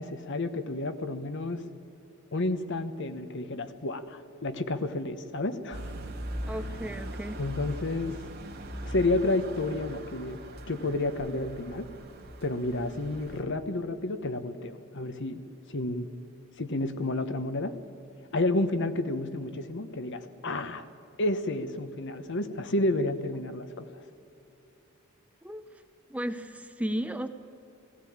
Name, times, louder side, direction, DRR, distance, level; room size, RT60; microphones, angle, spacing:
voice 1, 0.0-1.6 2.3-5.9 7.4-8.2 8.8-10.4 10.7-11.9 12.4-15.4 15.7-16.1 16.6-17.8 18.3-20.9 21.2-23.9, left 2 dB, 60° left, 10 dB, 1.1 m, -30 dB
sound 1, 5.7-13.4, right 1 dB, 50° right, 2.4 m, -40 dB
voice 2, 6.5-7.4 25.4-25.6 26.1-27.3, equal, 5° right, 8 dB, 0.7 m, -34 dB
18.0 x 16.5 x 8.7 m, 2.7 s
head